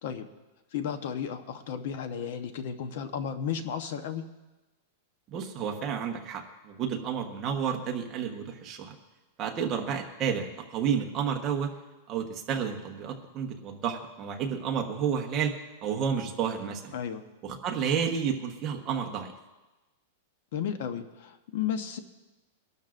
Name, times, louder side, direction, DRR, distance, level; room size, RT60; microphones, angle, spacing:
voice 1, 0.7-4.3 16.9-17.2 20.5-22.0, left 8 dB, 50° left, 9 dB, 0.9 m, -33 dB
voice 2, 5.3-8.9 9.4-11.7 12.1-15.5 15.8-16.9 17.4-19.3, right 7 dB, 20° right, 2 dB, 1.1 m, -31 dB
23.0 x 12.0 x 2.5 m, 1.1 s
supercardioid pair, 175°, 0 cm